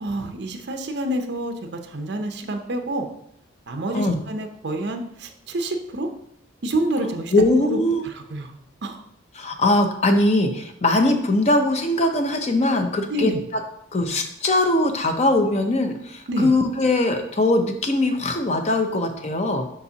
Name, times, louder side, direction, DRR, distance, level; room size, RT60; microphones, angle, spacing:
voice 1, 0.0-1.5 1.8-3.1 3.7-6.1 6.6-7.3 7.6-7.8 8.3-8.5 8.8-9.0 13.1-13.4 16.3-16.5, right 1 dB, 55° right, 5 dB, 0.6 m, -27 dB
voice 2, 7.3-8.0 9.3-13.6 13.9-19.7, left 2 dB, 35° left, 6 dB, 0.6 m, -21 dB
6.9 x 5.0 x 2.8 m, 0.74 s
head